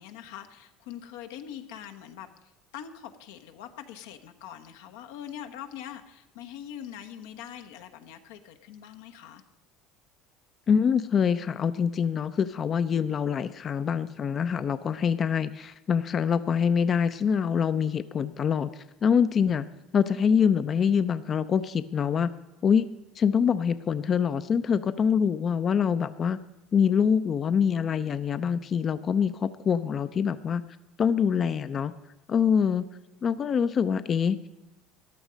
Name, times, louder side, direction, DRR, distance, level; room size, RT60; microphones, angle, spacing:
voice 1, 0.0-9.4, left 10 dB, 90° left, 7 dB, 1.1 m, -43 dB
voice 2, 10.7-19.7 19.9-22.3 22.6-22.9 23.2-26.4 26.7-30.6 31.0-31.9 32.3-32.8 33.2-34.4, left 7 dB, 35° left, 13 dB, 0.5 m, -25 dB
14.0 x 11.0 x 5.1 m, 0.98 s
supercardioid pair, 115°, 0 cm